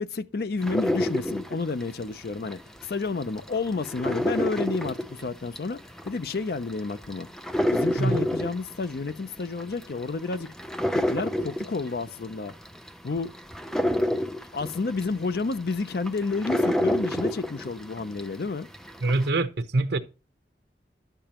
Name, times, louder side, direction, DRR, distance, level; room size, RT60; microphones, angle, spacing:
voice 1, 0.0-5.8 6.0-7.3 7.7-10.5 10.9-12.5 13.0-13.3 14.5-18.7, left 4 dB, 55° left, 0.5 m, -30 dB
sound 1, 0.6-2.9 3.2-18.4 18.7-19.3, left 1 dB, 5° left, 0.5 m, -29 dB
voice 2, 19.0-20.0, right 2 dB, 70° right, 0.8 m, -24 dB
11.0 x 6.8 x 2.9 m
head